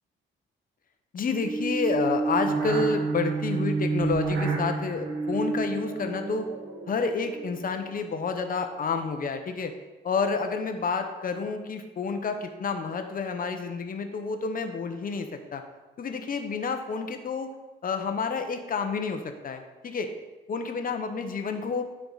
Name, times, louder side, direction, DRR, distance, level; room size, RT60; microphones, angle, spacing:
voice 1, 1.1-6.5 6.9-9.7 10.0-15.6 16.0-17.5 17.8-20.1 20.5-21.8, left 4 dB, 45° left, 6 dB, 0.9 m, -29 dB
sound 1, 1.4-7.8, right 4 dB, 75° right, 1.2 m, -29 dB
9.6 x 4.8 x 4.0 m, 1.1 s
cardioid pair, 100°, 21 cm